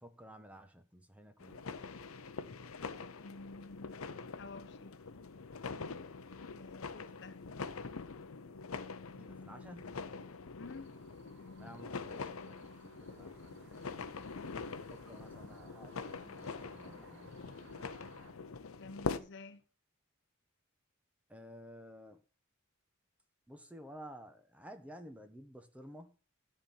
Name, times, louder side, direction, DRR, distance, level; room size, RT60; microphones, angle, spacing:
voice 1, 0.0-1.8 9.2-10.0 11.6-14.3 14.7-17.4 21.3-22.2 23.5-26.2, equal, 5° right, 1.1 m, -53 dB
sound 1, 1.4-19.2, left 4 dB, 85° left, 0.8 m, -44 dB
voice 2, 3.2-3.9 4.3-5.0 6.5-7.4 10.6-11.0 18.8-19.6, left 3 dB, 60° left, 0.9 m, -50 dB
sound 2, 10.6-18.3, right 2 dB, 60° right, 1.9 m, -61 dB
13.0 x 4.4 x 7.3 m
head